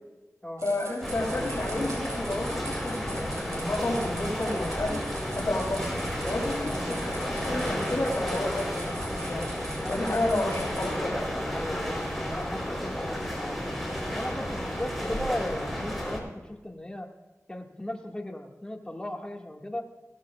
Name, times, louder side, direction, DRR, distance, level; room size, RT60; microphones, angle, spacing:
voice 1, 0.6-5.0 5.4-5.9 6.3-9.4 9.9-11.2, left 1 dB, 50° left, -6 dB, 3.8 m, -31 dB
sound 1, 0.6-10.9, right 2 dB, 65° right, 4.7 m, -43 dB
sound 2, 1.0-16.2, equal, ahead, 4.2 m, -32 dB
voice 2, 9.8-10.4 11.5-13.8 14.1-17.1 17.5-19.9, left 1 dB, 15° left, 1 dB, 2.1 m, -37 dB
17.0 x 14.5 x 2.5 m, 1.1 s
cardioid pair, 50°, 6 cm